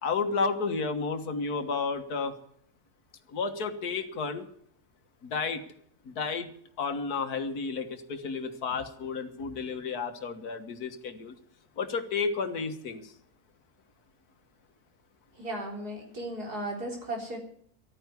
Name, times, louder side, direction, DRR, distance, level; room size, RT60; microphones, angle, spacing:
voice 1, 0.0-2.4 3.3-4.5 5.2-5.6 6.1-6.5 6.8-11.3 11.8-13.1, left 4 dB, 80° left, 8 dB, 1.9 m, -32 dB
voice 2, 15.4-17.4, right 1 dB, 85° right, 1 dB, 4.3 m, -35 dB
13.0 x 9.4 x 9.5 m, 0.64 s
omnidirectional pair, 1.6 m